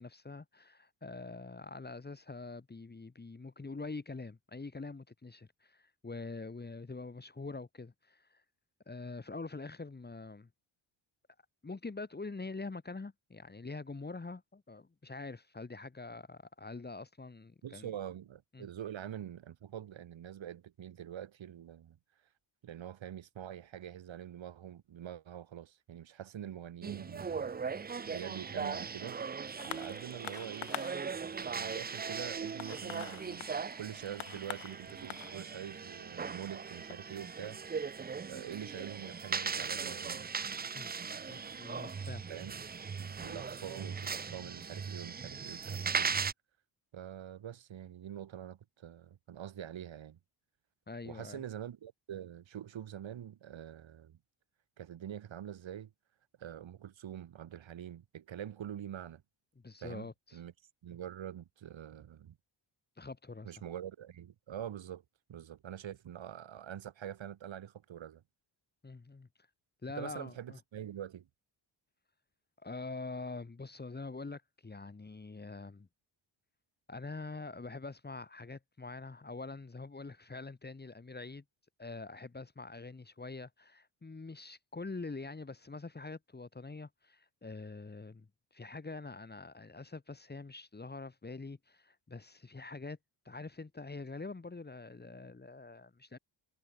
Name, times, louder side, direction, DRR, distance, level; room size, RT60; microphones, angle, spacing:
voice 1, 0.0-8.4 8.9-10.5 11.6-17.9 18.5-18.7 40.7-40.9 41.3-42.2 50.9-51.4 59.6-60.4 63.0-63.5 68.8-69.3 69.8-70.6 72.6-75.9 76.9-81.4 81.8-88.3 88.5-93.0 93.3-96.2, left 3 dB, 20° left, 2.1 m, -45 dB
voice 2, 17.6-22.0 22.6-27.5 28.1-29.2 29.6-30.7 31.4-33.5 33.8-37.6 38.2-40.2 42.3-42.6 42.9-46.2 46.9-50.2 51.0-54.2 54.8-55.9 56.4-59.2 59.8-60.5 60.8-62.4 63.4-65.0 65.3-68.2 70.0-71.3, right 10 dB, 70° right, 5.3 m, -45 dB
sound 1, 26.8-46.3, right 6 dB, 20° right, 0.5 m, -39 dB
sound 2, 29.6-38.4 39.2-39.3, left 12 dB, 85° left, 3.7 m, -48 dB
cardioid pair, 105°, 47 cm